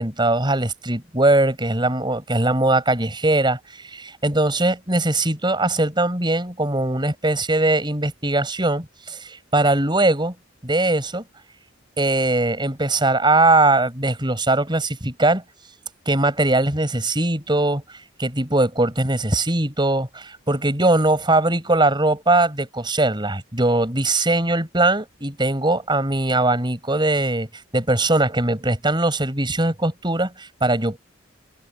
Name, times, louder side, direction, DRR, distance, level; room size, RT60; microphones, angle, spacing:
voice 1, 0.0-10.4 10.6-11.2 12.0-15.4 16.1-17.8 18.2-31.0, right 2 dB, 25° right, 6.9 m, -21 dB
head